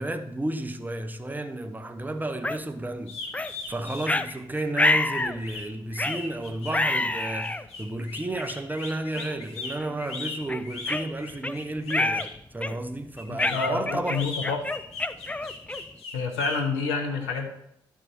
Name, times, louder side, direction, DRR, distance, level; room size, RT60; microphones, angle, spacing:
voice 1, 0.0-14.2, right 1 dB, 15° right, 0.9 m, -32 dB
sound 1, 2.4-2.6 3.3-3.5 4.1-4.3 4.8-5.4 6.0-6.2 6.7-7.6 8.3-8.4 9.2-9.4 9.8-9.9 10.5-11.5 11.9-12.3 12.6-12.9 13.4-16.0, left 2 dB, 10° left, 0.5 m, -27 dB
sound 2, 3.0-12.4 13.2-16.6, left 4 dB, 60° left, 1.5 m, -38 dB
voice 2, 13.3-14.7 16.1-17.5, left 4 dB, 80° left, 1.1 m, -28 dB
11.5 x 4.7 x 4.5 m
figure-of-eight pair, 40°, 12 cm